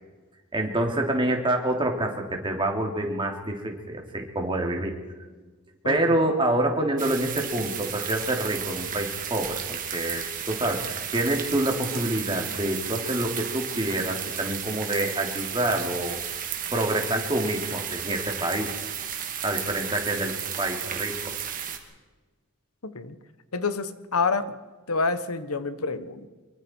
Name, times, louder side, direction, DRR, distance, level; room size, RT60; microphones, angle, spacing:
voice 1, 0.5-5.0 5.8-16.2 16.7-18.7 19.4-21.4, right 1 dB, 25° right, 2 dB, 3.1 m, -27 dB
voice 2, 5.8-6.2 22.8-23.1 23.5-24.5 24.9-26.3, left 4 dB, 85° left, 12 dB, 1.4 m, -28 dB
sound 1, 7.0-21.8, right 8 dB, 40° right, 2.5 m, -33 dB
24.5 x 23.5 x 4.7 m, 1.3 s
head